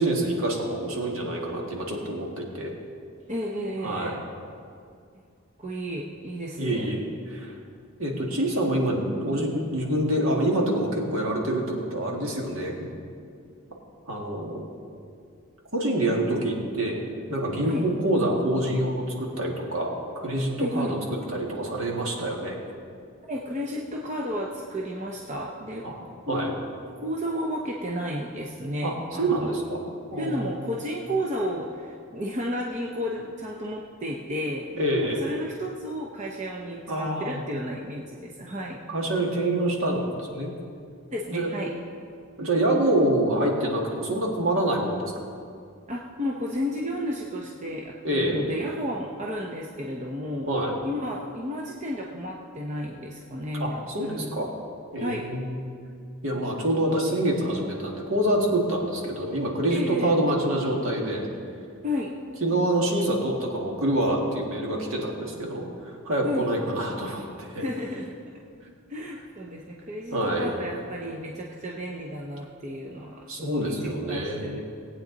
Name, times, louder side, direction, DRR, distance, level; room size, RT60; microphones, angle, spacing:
voice 1, 0.0-2.7 3.8-4.2 6.6-7.0 7.3-7.5 8.0-12.9 14.1-14.7 15.7-17.0 17.3-21.0 21.3-22.6 25.8-26.0 26.3-26.5 28.8-28.9 29.2-29.8 30.1-30.5 34.8-35.3 36.9-37.4 38.9-40.5 41.3-41.5 42.4-45.1 48.0-48.4 50.5-50.8 53.5-54.5 54.9-55.5 56.2-61.2 62.4-67.6 70.1-70.5 73.3-74.6, right 1 dB, 65° right, -1 dB, 2.0 m, -26 dB
voice 2, 3.3-4.2 5.6-6.9 17.6-17.8 20.6-20.9 23.2-25.8 26.3-26.6 27.0-29.5 30.2-34.7 35.2-38.8 41.1-41.7 45.9-50.5 50.8-54.4 55.0-55.3 59.7-60.1 61.8-62.1 66.2-66.5 67.6-68.2 68.9-73.8 74.1-74.6, equal, 35° right, -1 dB, 0.8 m, -32 dB
19.0 x 8.6 x 4.0 m, 2.3 s
head